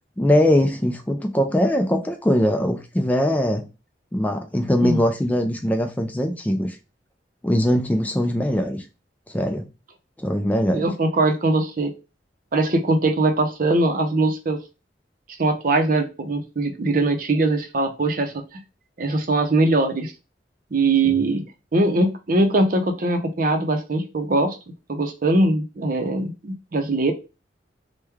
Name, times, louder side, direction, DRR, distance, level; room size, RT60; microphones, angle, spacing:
voice 1, 0.2-3.7 4.1-6.8 7.4-8.8 9.3-9.7 10.2-10.9, equal, 10° left, 0.3 m, -21 dB
voice 2, 10.7-11.9 12.5-14.6 15.4-18.6 19.0-20.1 20.7-21.5 21.7-24.6 24.9-27.1, right 2 dB, 50° right, 0.6 m, -21 dB
3.1 x 2.2 x 3.4 m
head